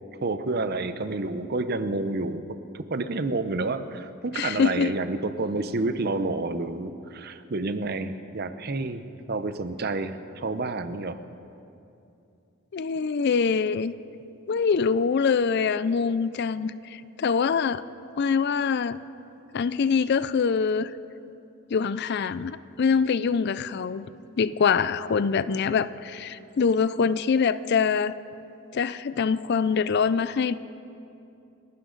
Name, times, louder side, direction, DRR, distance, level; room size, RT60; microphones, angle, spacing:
voice 1, 0.2-2.4 2.7-11.2, right 3 dB, 45° right, 11 dB, 0.7 m, -29 dB
voice 2, 4.3-4.9 12.7-13.9 14.5-17.8 18.2-19.0 19.5-20.9 21.7-24.1 24.4-28.1 28.7-30.6, left 5 dB, 50° left, 16 dB, 0.4 m, -24 dB
29.0 x 11.0 x 3.9 m, 2.7 s
head